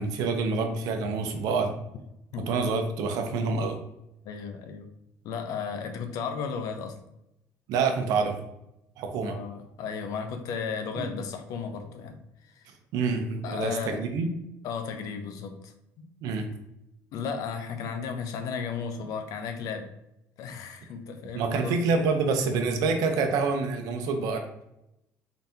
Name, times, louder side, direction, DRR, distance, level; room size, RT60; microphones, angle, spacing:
voice 1, 0.0-1.7 2.5-3.8 7.7-8.4 9.0-9.4 11.0-11.1 12.9-14.3 16.2-16.5 21.3-24.4, right 4 dB, 75° right, 5 dB, 0.7 m, -27 dB
voice 2, 4.2-4.9 5.2-7.0 9.2-12.2 12.5-12.6 13.4-13.9 14.6-16.1 17.1-19.9 20.4-21.7, left 6 dB, 65° left, 7 dB, 0.6 m, -34 dB
3.9 x 3.5 x 2.7 m, 0.85 s
cardioid pair, 120°, 6 cm